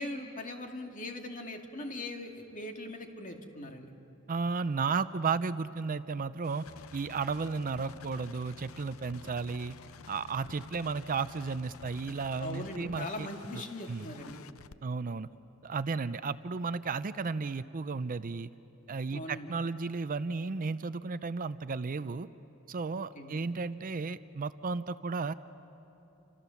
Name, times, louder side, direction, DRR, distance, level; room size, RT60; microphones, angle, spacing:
voice 1, 0.0-3.9 12.4-14.4 19.1-19.5 23.0-23.4, left 1 dB, 40° left, 3 dB, 2.2 m, -40 dB
voice 2, 4.3-9.8 10.1-13.3 13.5-14.1 14.8-15.3 15.6-18.5 18.9-22.3 22.7-25.3, right 4 dB, 40° right, 13 dB, 0.5 m, -34 dB
sound 1, 6.4-14.8, left 6 dB, 75° left, 0.7 m, -51 dB
29.5 x 26.5 x 7.1 m, 2.9 s
head